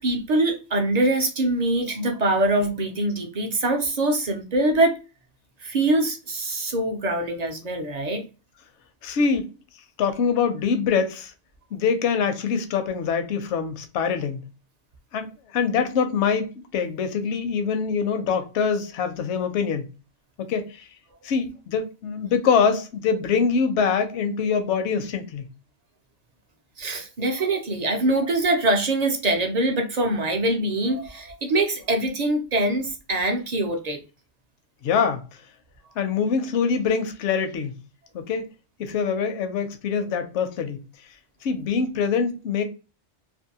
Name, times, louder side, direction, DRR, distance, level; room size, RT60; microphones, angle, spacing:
voice 1, 0.0-5.0 5.6-8.2 26.8-34.0, right 2 dB, 55° right, 0.5 m, -23 dB
voice 2, 9.0-9.5 10.0-11.3 11.7-14.4 15.1-19.9 20.4-20.9 21.2-25.5 34.8-35.2 36.0-37.8 38.1-38.5 38.8-40.8 41.4-42.6, left 6 dB, 75° left, 0.9 m, -24 dB
2.6 x 2.5 x 2.7 m
omnidirectional pair, 1.2 m